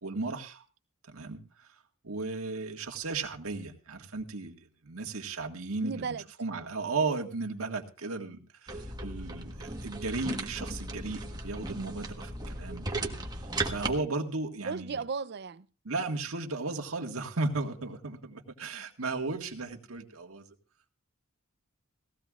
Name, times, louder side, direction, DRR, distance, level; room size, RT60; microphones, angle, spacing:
voice 1, 0.0-0.6 1.1-1.7 2.0-13.2 13.6-15.0 15.8-20.5, right 3 dB, 85° right, 1.8 m, -35 dB
voice 2, 5.8-6.2 14.6-15.7, right 5 dB, 50° right, 0.5 m, -35 dB
sound 1, 8.7-14.0, right 2 dB, 20° right, 1.3 m, -36 dB
18.0 x 15.5 x 2.5 m
head